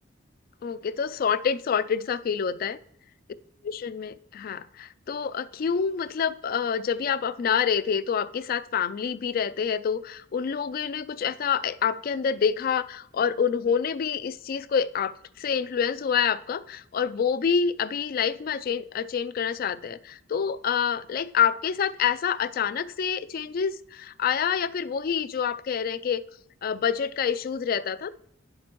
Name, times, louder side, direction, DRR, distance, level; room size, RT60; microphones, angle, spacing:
voice 1, 0.6-2.8 3.6-26.2 26.6-28.1, left 7 dB, 50° left, 16 dB, 0.3 m, -27 dB
10.5 x 7.2 x 3.0 m, 0.71 s
head